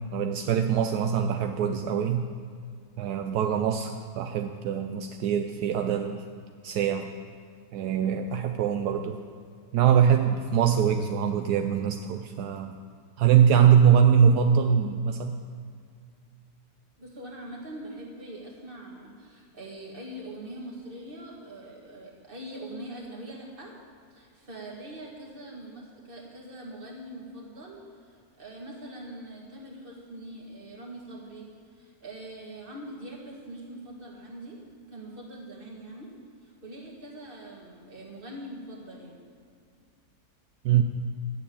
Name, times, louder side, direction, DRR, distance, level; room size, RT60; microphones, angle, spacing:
voice 1, 0.1-2.3 3.0-6.2 6.6-7.1 7.7-9.2 9.7-12.8 13.2-15.3 40.6-40.8, right 8 dB, 80° right, 6 dB, 1.1 m, -23 dB
voice 2, 17.0-23.7 24.1-34.6 34.9-36.1 36.4-39.2, right 1 dB, 35° right, -1 dB, 2.1 m, -43 dB
11.0 x 6.8 x 8.5 m, 2.2 s
omnidirectional pair, 1.7 m